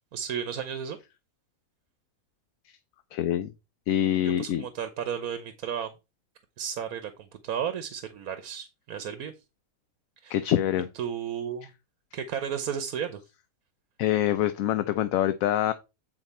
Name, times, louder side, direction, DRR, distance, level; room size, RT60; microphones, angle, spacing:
voice 1, 0.1-1.0 4.2-5.9 6.6-9.3 10.2-10.4 11.0-11.7 12.1-13.2, right 8 dB, 80° right, 1.3 m, -33 dB
voice 2, 3.1-3.5 3.9-4.6 10.3-10.9 14.0-15.7, left 11 dB, 70° left, 1.0 m, -25 dB
8.9 x 4.5 x 4.2 m
omnidirectional pair, 1.5 m